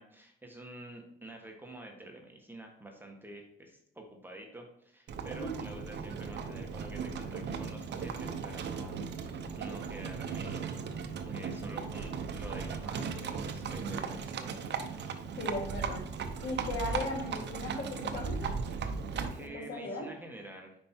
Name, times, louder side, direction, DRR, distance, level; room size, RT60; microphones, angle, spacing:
voice 1, 0.0-10.6 11.2-14.7 19.0-20.8, right 1 dB, 10° right, 1 dB, 1.4 m, -48 dB
Livestock farm animals working animals, 5.1-19.5, right 5 dB, 65° right, 0.7 m, -37 dB
voice 2, 15.4-16.0 16.4-18.5 19.5-20.1, left 2 dB, 65° left, -2 dB, 2.4 m, -37 dB
5.2 x 4.6 x 4.3 m, 0.73 s
cardioid pair, 75°, 19 cm